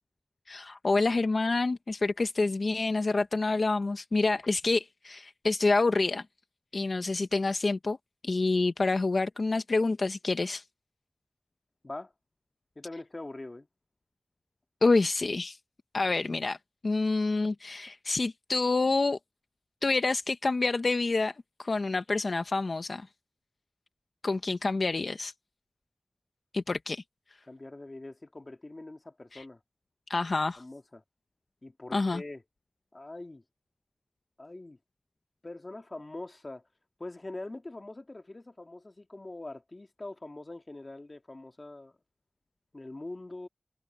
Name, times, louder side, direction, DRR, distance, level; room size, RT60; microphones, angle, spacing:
voice 1, 0.5-6.3 6.7-8.0 8.2-10.6 14.8-15.6 15.9-16.6 16.8-19.2 19.8-23.1 24.2-25.3 26.5-27.0 29.3-29.4 30.1-30.6 31.9-32.2, left 3 dB, 75° left, 0.8 m, -27 dB
voice 2, 12.8-13.7 27.5-29.6 30.6-31.0 31.6-32.4 32.9-33.4 34.4-34.8 35.4-36.7 37.0-42.0 42.7-43.5, left 2 dB, 45° left, 1.9 m, -43 dB
wide cardioid pair, 70°, 0 cm